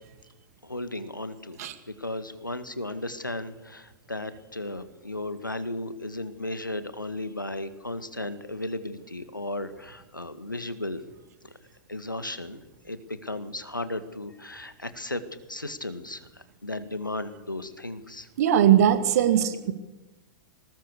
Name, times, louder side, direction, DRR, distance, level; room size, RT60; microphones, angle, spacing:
voice 1, 0.6-1.6 1.9-11.0 11.4-11.5 11.9-15.2 15.5-18.3, left 1 dB, 85° left, 11 dB, 1.8 m, -35 dB
voice 2, 18.4-19.7, right 10 dB, 55° right, 10 dB, 2.1 m, -20 dB
21.0 x 19.0 x 6.7 m, 1.0 s
figure-of-eight pair, 100°, 10 cm